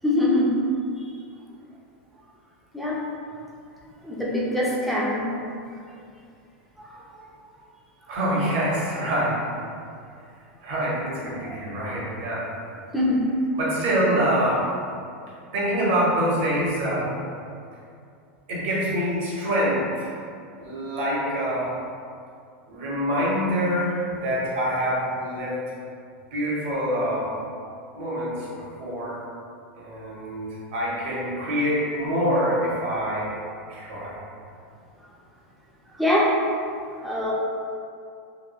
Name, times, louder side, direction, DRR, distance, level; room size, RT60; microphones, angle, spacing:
voice 1, 0.0-0.6 2.7-3.0 4.0-5.3 6.8-7.3 11.5-11.6 12.9-13.3 36.0-36.3 37.0-37.3, left 1 dB, ahead, -6 dB, 0.4 m, -23 dB
voice 2, 8.1-9.4 10.6-12.5 13.5-14.6 15.5-17.1 18.5-20.1 20.6-21.7 22.7-25.6 26.3-27.3 27.9-29.2 29.7-33.3 33.7-34.2, equal, 60° right, -6 dB, 0.8 m, -25 dB
3.0 x 2.2 x 2.2 m, 2.4 s
supercardioid pair, 145°, 7 cm